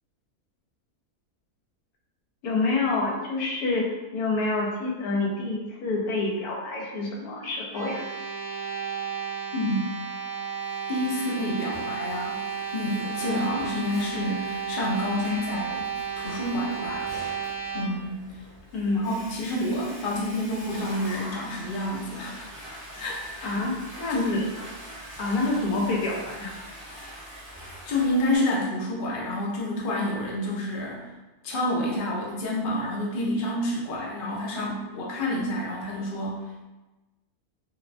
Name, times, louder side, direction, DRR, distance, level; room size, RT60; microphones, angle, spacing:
voice 1, 2.4-8.0 18.7-19.2 23.4-24.5 25.2-26.5, left 2 dB, 80° left, -2 dB, 1.1 m, -27 dB
sound 1, 7.7-17.8, right 6 dB, 65° right, 1.2 m, -33 dB
voice 2, 9.5-9.9 10.9-12.4 12.7-15.9 16.2-17.1 17.7-18.2 18.9-22.6 23.0-23.5 24.1-24.3 27.0-27.2 27.9-31.1 31.4-36.6, left 1 dB, 60° left, -4 dB, 0.5 m, -29 dB
Water / Toilet flush, 10.9-28.4, equal, 35° right, 0.7 m, -43 dB
2.7 x 2.0 x 2.5 m, 1.1 s
omnidirectional pair, 1.6 m